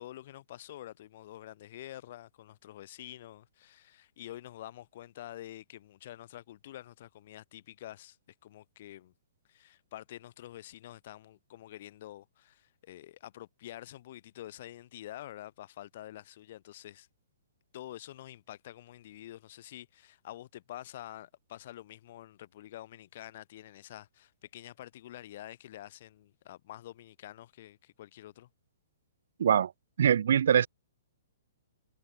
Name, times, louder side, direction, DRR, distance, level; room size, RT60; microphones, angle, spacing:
voice 1, 0.0-8.2 8.4-9.1 9.5-17.1 17.7-28.5, left 13 dB, 45° left, 5.8 m, -47 dB
voice 2, 29.4-29.7 30.0-30.7, right 8 dB, 55° right, 0.8 m, -23 dB
figure-of-eight pair, 120°, 0 cm